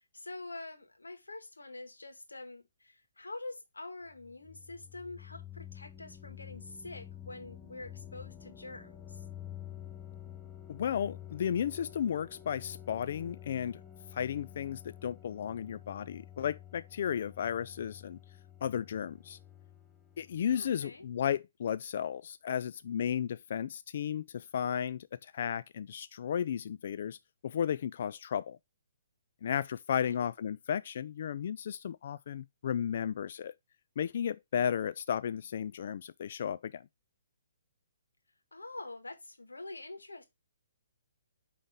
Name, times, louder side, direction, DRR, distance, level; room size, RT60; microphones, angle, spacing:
voice 1, 0.1-9.2 20.5-21.1 29.9-30.1 38.5-40.2, left 2 dB, 85° left, 1.9 m, -46 dB
sound 1, 4.1-20.8, left 10 dB, 10° left, 0.7 m, -50 dB
voice 2, 10.7-13.8 14.1-18.2 18.6-19.4 20.2-27.2 27.4-28.6 29.4-33.5 34.0-36.8, left 8 dB, 55° left, 0.3 m, -34 dB
8.8 x 3.5 x 3.7 m
figure-of-eight pair, 135°, 0 cm